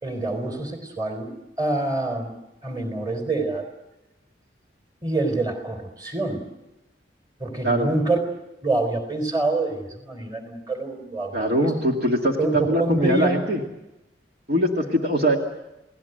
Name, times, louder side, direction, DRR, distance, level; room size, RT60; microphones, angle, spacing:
voice 1, 0.0-1.3 1.6-2.3 2.6-3.6 5.0-6.4 7.4-8.2 8.6-11.7 12.4-13.4, right 2 dB, 20° right, 5 dB, 3.9 m, -26 dB
voice 2, 11.3-13.6 14.5-15.4, right 1 dB, 50° right, 1 dB, 2.3 m, -22 dB
30.0 x 18.5 x 8.0 m, 0.97 s
head